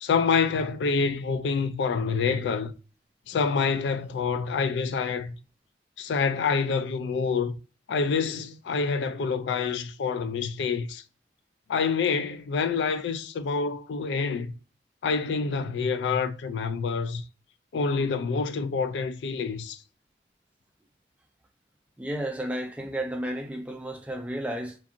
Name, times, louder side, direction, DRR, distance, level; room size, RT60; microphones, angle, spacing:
voice 1, 0.0-2.7 3.3-5.3 6.0-7.6 7.9-11.0 11.7-14.5 15.0-17.2 17.7-19.8, left 5 dB, 80° left, 0.3 m, -27 dB
voice 2, 22.0-24.8, right 1 dB, 5° right, 0.3 m, -32 dB
2.6 x 2.5 x 2.4 m
head